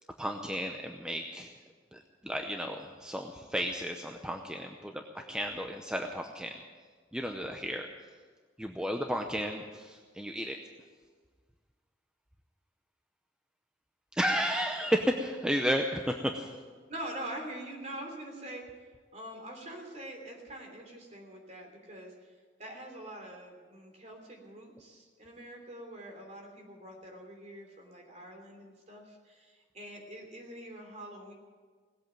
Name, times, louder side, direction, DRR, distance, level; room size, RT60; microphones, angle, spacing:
voice 1, 0.2-1.5 1.9-5.0 5.3-6.6 7.1-7.9 8.6-10.6 14.2-16.5, equal, 5° right, 3 dB, 0.7 m, -33 dB
voice 2, 16.9-18.7 19.1-22.3 22.6-31.3, right 1 dB, 40° right, 2 dB, 3.3 m, -44 dB
18.5 x 8.5 x 9.1 m, 1.5 s
head